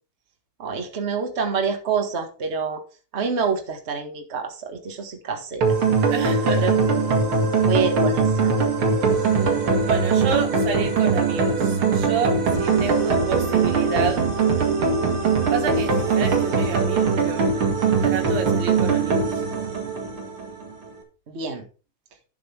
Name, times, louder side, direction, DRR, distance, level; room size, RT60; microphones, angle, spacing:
voice 1, 0.6-2.8 3.1-5.8 6.5-6.8 7.6-8.5 21.3-21.6, right 5 dB, 30° right, 4 dB, 1.3 m, -27 dB
sound 1, 5.6-20.7, right 4 dB, 45° right, 2.5 m, -21 dB
voice 2, 6.1-6.7 9.8-14.3 15.5-17.5 18.0-19.3, right 6 dB, 65° right, 4 dB, 2.9 m, -29 dB
11.0 x 6.1 x 4.4 m, 0.34 s
omnidirectional pair, 3.5 m